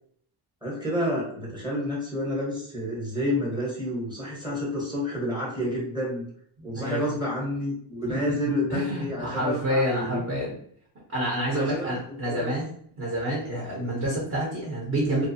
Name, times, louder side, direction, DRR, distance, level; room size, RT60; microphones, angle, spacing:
voice 1, 0.6-6.2 6.6-10.3 11.5-12.5, equal, 10° right, -4 dB, 1.0 m, -29 dB
voice 2, 6.6-7.1 8.1-8.2 8.7-10.5 11.1-12.7 13.0-15.3, right 1 dB, 35° right, -3 dB, 0.9 m, -28 dB
2.5 x 2.2 x 2.7 m, 0.62 s
cardioid pair, 115°, 47 cm